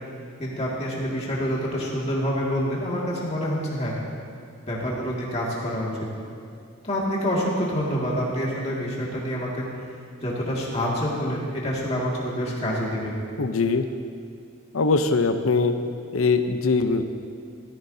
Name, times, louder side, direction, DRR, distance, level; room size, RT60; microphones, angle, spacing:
voice 1, 0.4-3.9 4.7-5.9 6.8-9.7 10.2-13.1, equal, 30° left, -5 dB, 2.1 m, -27 dB
voice 2, 13.4-13.8 14.7-15.7 16.1-17.0, left 4 dB, 75° left, 8 dB, 0.7 m, -21 dB
14.5 x 14.0 x 2.8 m, 2.5 s
head